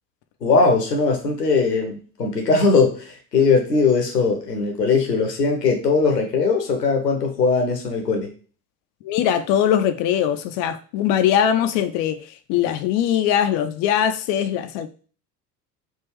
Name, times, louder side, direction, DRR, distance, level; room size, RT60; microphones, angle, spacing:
voice 1, 0.4-8.3, left 4 dB, 85° left, 0.9 m, -20 dB
voice 2, 9.0-14.9, left 9 dB, 40° left, 0.4 m, -21 dB
3.5 x 2.4 x 3.1 m
figure-of-eight pair, 65°, 47 cm